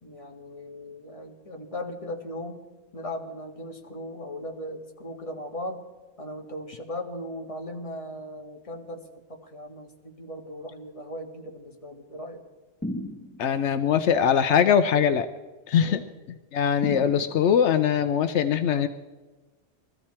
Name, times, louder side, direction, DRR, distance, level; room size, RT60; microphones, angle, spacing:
voice 1, 0.0-2.7 2.9-5.9 6.2-12.4 15.8-16.1, left 1 dB, 30° left, 1 dB, 1.8 m, -38 dB
sound 1, 12.8-13.7 16.8-17.7, equal, 10° left, 1.4 m, -35 dB
voice 2, 13.4-15.3 15.7-16.0 16.5-18.9, left 8 dB, 80° left, 10 dB, 0.9 m, -22 dB
21.5 x 14.5 x 4.3 m, 1.2 s
omnidirectional pair, 1.2 m